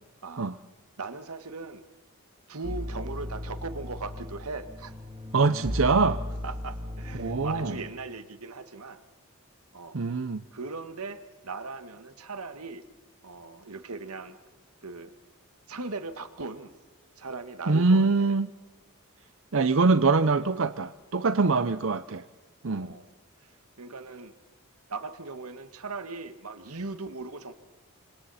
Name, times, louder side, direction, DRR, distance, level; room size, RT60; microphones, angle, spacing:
voice 1, 0.2-0.6 1.0-1.8 2.5-4.9 6.4-9.0 9.7-10.0 10.5-12.8 13.2-14.4 14.8-15.1 15.7-16.7 17.2-18.3 21.4-21.6 22.6-23.1 23.8-24.3 24.9-27.5, right 3 dB, 85° right, 10 dB, 1.7 m, -39 dB
sound 1, 2.6-7.9, left 1 dB, 20° right, 1.8 m, -36 dB
voice 2, 5.3-6.2 7.2-7.8 9.9-10.4 17.7-18.5 19.5-22.2 22.6-22.9, right 3 dB, 60° right, 12 dB, 0.7 m, -23 dB
26.5 x 26.0 x 4.2 m, 1.2 s
head